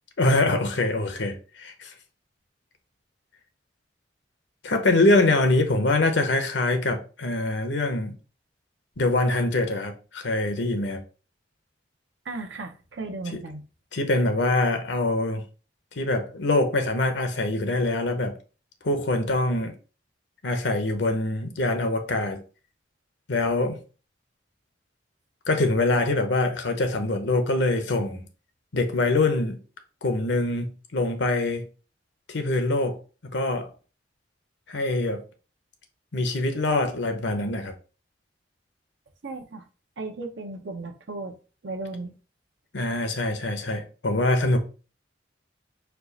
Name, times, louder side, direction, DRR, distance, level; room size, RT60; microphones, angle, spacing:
voice 1, 0.2-1.9 4.6-8.1 9.0-11.0 13.9-15.4 16.0-18.4 18.8-19.7 20.4-22.4 23.3-23.8 25.5-28.2 28.7-29.6 30.0-31.7 32.3-33.0 33.2-33.7 34.7-35.2 36.1-37.7 42.7-44.6, left 2 dB, 75° left, 0.8 m, -24 dB
voice 2, 12.2-13.6 39.2-39.6 40.0-41.4 41.6-42.1, right 3 dB, 80° right, 0.8 m, -35 dB
4.5 x 2.4 x 3.9 m
head